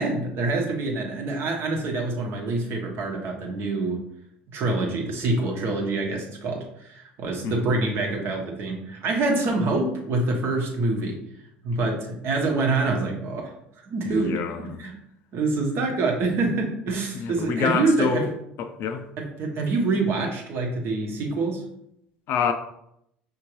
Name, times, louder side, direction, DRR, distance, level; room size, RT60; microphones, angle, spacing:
voice 1, 0.0-4.0 4.5-11.2 11.6-13.5 13.8-14.9 15.3-18.3 19.2-21.6, right 3 dB, 55° right, 1.0 m, -26 dB
voice 2, 14.1-14.8 17.1-18.3 18.6-19.0 22.3-22.5, left 7 dB, 55° left, 0.4 m, -27 dB
5.1 x 2.8 x 3.0 m
hypercardioid pair, 65°, 5 cm